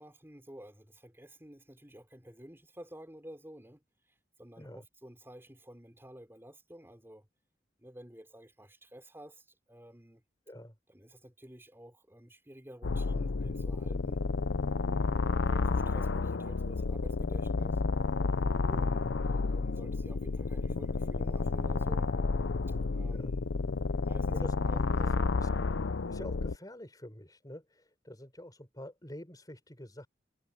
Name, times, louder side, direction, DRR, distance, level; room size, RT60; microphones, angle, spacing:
voice 1, 0.0-3.8 4.4-7.2 7.8-10.2 10.9-14.3 14.9-17.8 18.6-22.1 22.7-23.4 23.9-24.3 24.6-25.1, equal, 15° right, 5.0 m, -51 dB
sound 1, 12.8-26.5, left 3 dB, 85° left, 0.6 m, -31 dB
voice 2, 24.3-25.5 26.0-30.1, left 1 dB, 20° left, 5.5 m, -47 dB
head